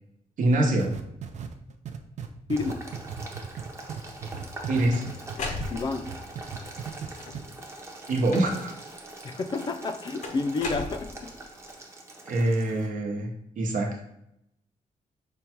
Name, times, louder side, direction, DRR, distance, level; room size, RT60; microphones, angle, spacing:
voice 1, 0.4-0.9 4.7-5.1 8.1-8.7 12.3-13.3 13.6-13.9, right 1 dB, 75° right, 1 dB, 1.0 m, -24 dB
sound 1, 0.8-5.7 6.0-7.1 7.3-7.4, right 7 dB, 60° right, 0.4 m, -36 dB
voice 2, 2.5-2.9 5.7-6.1 9.2-11.1, left 3 dB, 35° left, 9 dB, 0.4 m, -30 dB
Boiling, 2.6-12.9, right 2 dB, 20° right, 0.7 m, -43 dB
sound 2, 4.4-6.2 7.1-7.6 8.3-8.8 10.2-11.5, left 3 dB, 65° left, 0.7 m, -37 dB
5.3 x 2.2 x 4.4 m, 0.77 s
wide cardioid pair, 160°, 14 cm